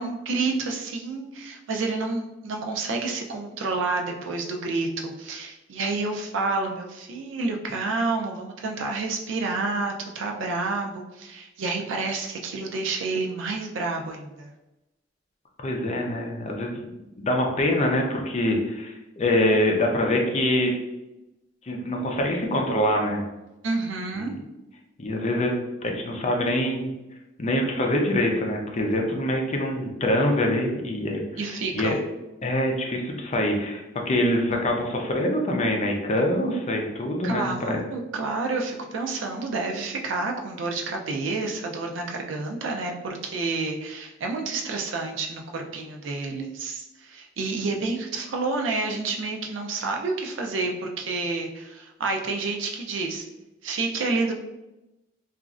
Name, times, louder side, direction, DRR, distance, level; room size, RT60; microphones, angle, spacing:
voice 1, 0.0-14.5 23.6-24.3 31.4-32.0 37.2-53.3 53.6-54.3, right 3 dB, 90° right, 2 dB, 0.5 m, -29 dB
voice 2, 15.6-16.9 17.2-20.7 21.7-23.2 24.3-24.4 25.0-25.5 25.8-26.9 27.4-32.0 32.4-37.8, left 1 dB, 35° left, 1 dB, 0.5 m, -25 dB
3.0 x 2.4 x 2.4 m, 0.97 s
head